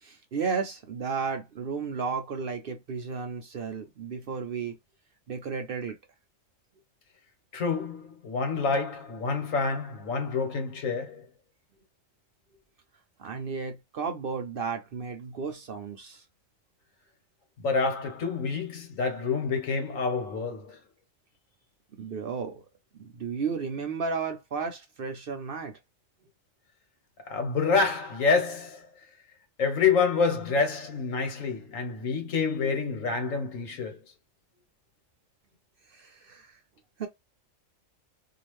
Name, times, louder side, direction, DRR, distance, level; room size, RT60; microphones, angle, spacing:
voice 1, 0.0-4.8 5.3-6.0 13.2-16.2 22.0-22.6 23.0-25.8 35.9-36.6 37.0-37.1, right 5 dB, 55° right, 0.7 m, -33 dB
voice 2, 7.5-11.3 17.6-20.8 27.3-28.9 29.6-34.0, left 4 dB, 85° left, 1.5 m, -27 dB
2.8 x 2.4 x 3.1 m
omnidirectional pair, 1.3 m